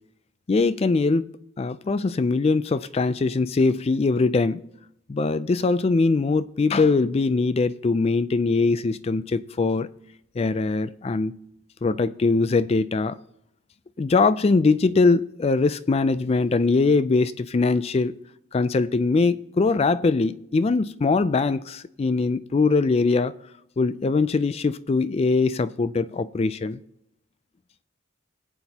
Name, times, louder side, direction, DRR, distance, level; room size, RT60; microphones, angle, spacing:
voice 1, 0.5-1.3 1.6-4.6 5.1-9.9 10.4-11.4 11.8-13.2 14.0-18.2 18.5-23.4 23.8-26.8, left 3 dB, 30° left, 0.3 m, -22 dB
21.0 x 7.9 x 2.8 m
head